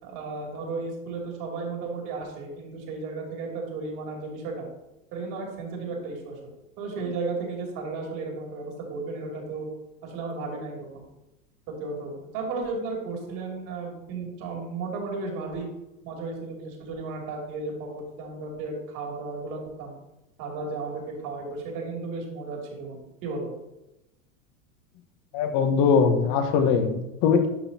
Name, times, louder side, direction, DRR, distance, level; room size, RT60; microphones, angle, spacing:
voice 1, 0.0-4.6 5.1-6.4 6.8-9.7 10.0-11.0 11.8-15.7 16.0-19.9 20.4-23.5, right 3 dB, 50° right, 0 dB, 2.7 m, -34 dB
voice 2, 25.3-27.5, left 6 dB, 50° left, 6 dB, 1.3 m, -21 dB
11.5 x 5.6 x 2.8 m, 0.93 s
hypercardioid pair, 95°, 42 cm